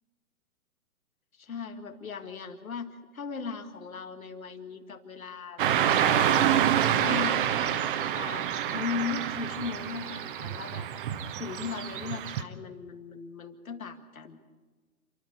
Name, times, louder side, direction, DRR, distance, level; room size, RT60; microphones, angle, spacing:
voice 1, 1.3-5.7 6.0-7.4 8.1-10.9 11.4-14.4, left 6 dB, 70° left, 6 dB, 2.1 m, -38 dB
Car passing by / Traffic noise roadway noise, 5.6-12.4, right 10 dB, 35° right, 1.2 m, -27 dB
28.0 x 12.0 x 8.4 m, 1.3 s
figure-of-eight pair, 125°, 44 cm